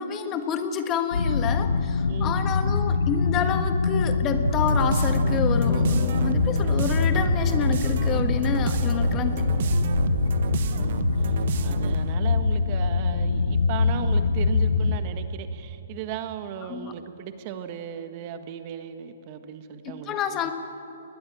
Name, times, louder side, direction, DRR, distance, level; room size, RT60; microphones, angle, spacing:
voice 1, 0.0-9.6 16.6-16.9 19.8-20.5, left 7 dB, 20° left, 8 dB, 1.4 m, -29 dB
sound 1, 1.1-15.0, left 4 dB, 90° left, 1.4 m, -24 dB
voice 2, 2.1-2.4 8.8-9.1 10.7-20.4, right 9 dB, 35° right, 9 dB, 1.5 m, -37 dB
sound 2, 4.4-12.1, right 7 dB, 55° right, 1.2 m, -30 dB
21.5 x 20.0 x 8.6 m, 3.0 s
hypercardioid pair, 155°, 0 cm